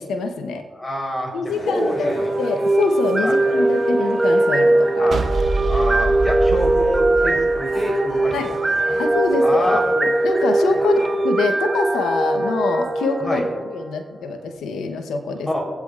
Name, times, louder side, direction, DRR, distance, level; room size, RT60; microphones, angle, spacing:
voice 1, 0.0-0.6 1.3-2.1 2.4-5.1 8.3-8.5 9.0-9.7 9.9-13.4 13.7-15.5, left 4 dB, 80° left, 6 dB, 0.9 m, -25 dB
voice 2, 0.8-1.3 1.6-2.3 3.2-3.3 5.0-5.2 5.6-8.3 8.9-9.0 9.4-9.8 13.2-13.5 15.5-15.7, equal, 20° left, 0 dB, 3.8 m, -26 dB
sound 1, 1.5-11.3, left 1 dB, 60° left, 2.1 m, -38 dB
sound 2, 1.9-14.0, right 2 dB, 30° right, 1.4 m, -20 dB
sound 3, 5.1-8.3, right 4 dB, 65° right, 1.1 m, -25 dB
23.5 x 8.2 x 2.5 m, 1.5 s
supercardioid pair, 45°, 0 cm